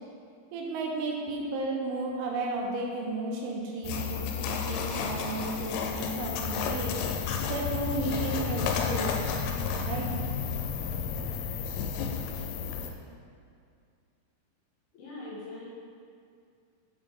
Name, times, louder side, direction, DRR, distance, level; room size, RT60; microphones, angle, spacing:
voice 1, 0.5-7.0 7.5-9.2 9.8-10.2, right 2 dB, 85° right, -1 dB, 3.1 m, -33 dB
sound 1, 3.8-12.9, left 6 dB, 85° left, 3.1 m, -32 dB
voice 2, 14.9-15.7, left 2 dB, 65° left, -9 dB, 3.0 m, -41 dB
7.2 x 4.1 x 3.4 m, 2.3 s
omnidirectional pair, 5.6 m